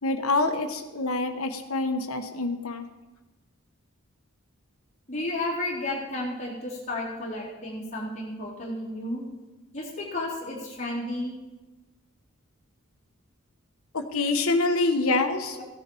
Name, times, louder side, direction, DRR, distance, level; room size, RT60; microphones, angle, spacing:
voice 1, 0.0-2.8 14.1-15.6, left 3 dB, 80° left, 6 dB, 1.3 m, -26 dB
voice 2, 5.1-9.2 9.7-11.3 15.5-15.6, left 1 dB, 30° left, -7 dB, 3.6 m, -32 dB
15.5 x 10.5 x 4.6 m, 1.1 s
head